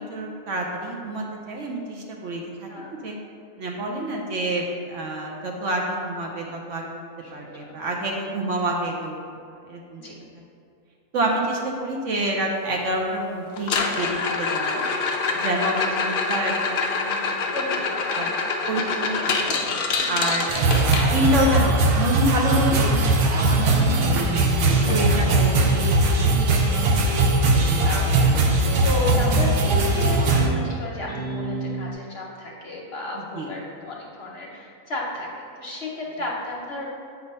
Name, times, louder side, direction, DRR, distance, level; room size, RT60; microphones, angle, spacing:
voice 1, 0.0-3.1 3.6-7.0 7.3-9.2 9.7-10.0 11.1-14.8 15.3-17.6 18.1-18.3 18.7-19.5 20.1-20.5 21.0-23.0 23.3-24.5 24.9-26.6 33.2-33.5, right 1 dB, 65° right, 0 dB, 0.9 m, -28 dB
voice 2, 2.7-3.0 7.2-8.0 9.9-10.2 17.5-18.3 20.0-20.2 24.6-25.0 27.5-35.3 35.6-36.9, left 2 dB, 50° left, -3 dB, 0.9 m, -33 dB
sound 1, 13.6-21.5 23.8-23.9 24.1-24.5 24.9-25.0 25.6-25.7 27.5-27.6, left 4 dB, 70° left, 0.5 m, -26 dB
sound 2, 20.5-30.5, right 2 dB, 90° right, 1.2 m, -20 dB
sound 3, 22.7-31.9, right 2 dB, 35° right, 0.8 m, -32 dB
7.9 x 2.7 x 5.3 m, 2.4 s
omnidirectional pair, 1.5 m